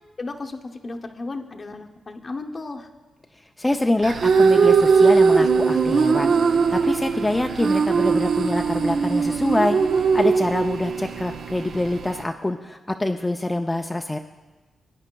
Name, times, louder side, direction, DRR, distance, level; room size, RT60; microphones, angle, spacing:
voice 1, 0.2-2.9, left 3 dB, 35° left, 4 dB, 0.7 m, -34 dB
voice 2, 3.6-14.2, left 1 dB, 15° left, 4 dB, 0.4 m, -25 dB
sound 1, 4.0-12.2, right 5 dB, 65° right, 0.5 m, -20 dB
17.5 x 9.8 x 2.2 m, 1.2 s
cardioid pair, 110°, 0 cm